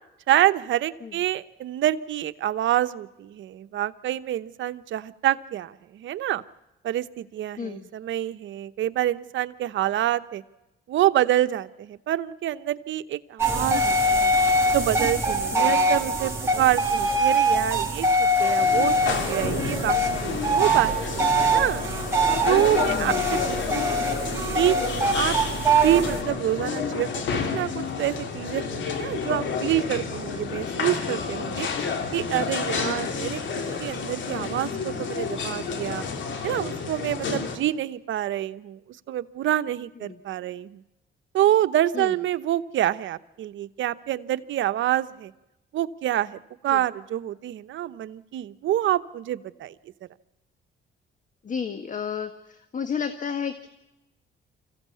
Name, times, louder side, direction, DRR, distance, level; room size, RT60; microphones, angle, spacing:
voice 1, 0.3-6.4 6.8-10.4 10.9-14.3 14.7-21.8 22.5-24.2 24.5-24.7 25.1-25.3 25.8-27.2 27.5-31.7 32.1-36.0 36.4-38.8 39.1-40.8 41.3-45.3 45.7-46.4 46.6-49.7, right 13 dB, 75° right, 13 dB, 0.9 m, -27 dB
voice 2, 7.6-7.9 15.5-15.8 22.9-23.2 32.8-33.1 37.2-37.4 40.0-40.1 41.9-42.2 46.7-46.8 51.4-52.3 52.7-53.7, left 7 dB, 40° left, 10 dB, 1.6 m, -32 dB
sound 1, 13.4-26.2, right 1 dB, 15° right, 5.2 m, -23 dB
sound 2, 18.6-37.6, left 5 dB, 70° left, 3.2 m, -30 dB
25.5 x 15.5 x 8.4 m, 0.96 s
cardioid pair, 90°, 20 cm